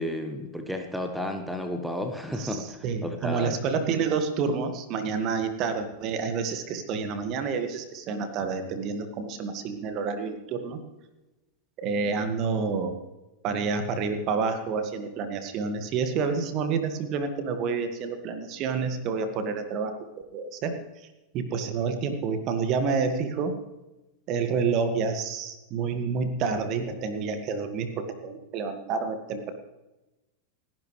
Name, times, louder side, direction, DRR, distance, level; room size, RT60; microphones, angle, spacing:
voice 1, 0.0-3.5, left 1 dB, ahead, 6 dB, 1.4 m, -32 dB
voice 2, 2.3-10.8 11.8-12.9 13.4-20.0 20.3-20.8 21.3-23.5 24.3-29.4, right 5 dB, 40° right, 8 dB, 1.9 m, -29 dB
29.5 x 11.0 x 3.3 m, 1.0 s
figure-of-eight pair, 90°, 0 cm